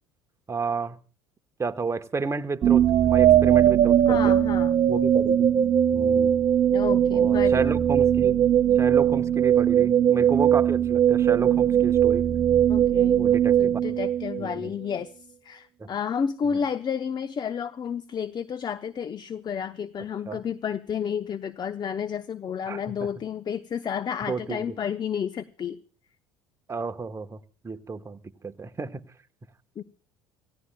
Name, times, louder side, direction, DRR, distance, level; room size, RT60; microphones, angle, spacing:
voice 1, 0.5-1.0 1.6-4.3 4.9-5.5 5.9-6.3 7.1-8.4 8.8-12.3 13.1-13.9 14.4-14.7 15.8-15.9 16.5-16.6 20.3-20.4 22.7-23.1 24.2-24.8 26.7-27.4 27.6-29.0, right 5 dB, 20° right, 8 dB, 1.1 m, -31 dB
sound 1, 2.6-14.7, right 10 dB, 35° right, 0.8 m, -20 dB
voice 2, 4.1-4.7 6.7-7.7 12.7-13.2 13.6-15.1 15.4-25.8 29.8-29.9, left 7 dB, 30° left, 12 dB, 0.7 m, -31 dB
28.0 x 16.0 x 2.2 m, 0.40 s
figure-of-eight pair, 60°, 14 cm